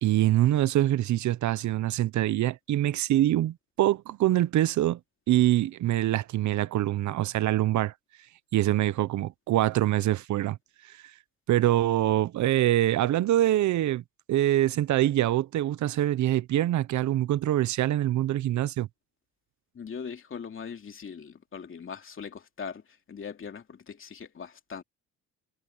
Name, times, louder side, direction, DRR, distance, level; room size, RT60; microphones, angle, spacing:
voice 1, 0.0-5.0 5.3-7.9 8.5-10.6 10.9-11.0 11.5-18.9, right 13 dB, 70° right, 0.8 m, -24 dB
voice 2, 19.7-22.8 23.1-24.8, left 6 dB, 45° left, 2.7 m, -40 dB
cardioid pair, 90°, 30 cm